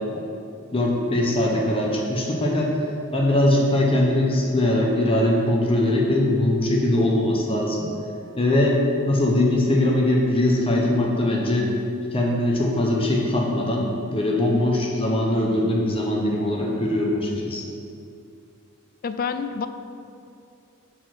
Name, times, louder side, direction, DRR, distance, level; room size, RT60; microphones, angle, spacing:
voice 1, 0.7-2.7 3.1-7.9 8.4-8.8 9.1-11.7 12.1-17.6, left 1 dB, 25° left, -2 dB, 0.8 m, -21 dB
voice 2, 19.0-19.7, left 5 dB, 45° left, 10 dB, 0.3 m, -27 dB
6.8 x 4.3 x 5.9 m, 2.5 s
head